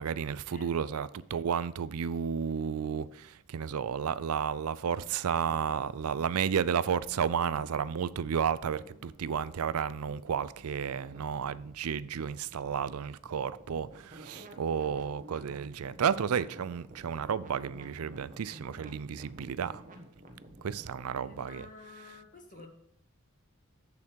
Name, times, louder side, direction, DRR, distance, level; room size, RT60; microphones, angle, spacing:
voice 1, 0.0-19.8 20.6-21.7, right 7 dB, 80° right, 0.4 m, -32 dB
sound 1, 5.2-21.4, right 1 dB, 35° right, 1.4 m, -52 dB
voice 2, 21.2-22.7, left 3 dB, 35° left, 1.8 m, -50 dB
8.0 x 7.1 x 4.6 m
head